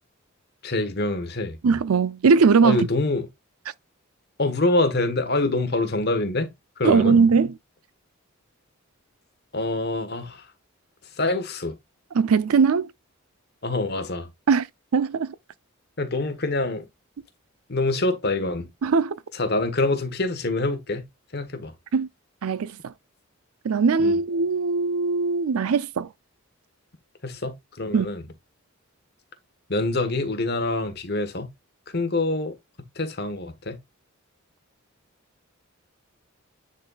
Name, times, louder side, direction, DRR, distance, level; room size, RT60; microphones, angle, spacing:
voice 1, 0.6-1.6 2.6-3.3 4.4-7.2 9.5-10.5 11.1-11.8 13.6-14.3 16.0-16.9 17.7-18.7 19.3-21.0 21.3-21.7 24.0-24.2 27.2-28.2 29.7-31.5 31.9-32.6 32.9-33.8, left 2 dB, 50° left, 1.2 m, -25 dB
voice 2, 1.6-2.8 6.8-7.5 12.1-12.9 14.5-14.6 14.9-15.3 18.8-19.2 21.9-22.1 22.4-22.9 23.6-26.1 27.9-28.1, right 5 dB, 85° right, 0.5 m, -20 dB
9.8 x 4.0 x 2.3 m
head